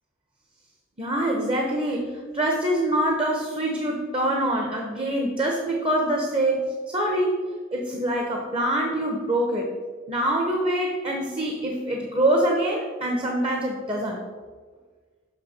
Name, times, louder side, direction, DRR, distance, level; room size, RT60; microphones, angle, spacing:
voice 1, 1.0-7.4 7.7-9.7 10.1-14.2, right 1 dB, 25° right, 1 dB, 1.0 m, -25 dB
6.6 x 5.7 x 6.6 m, 1.5 s
head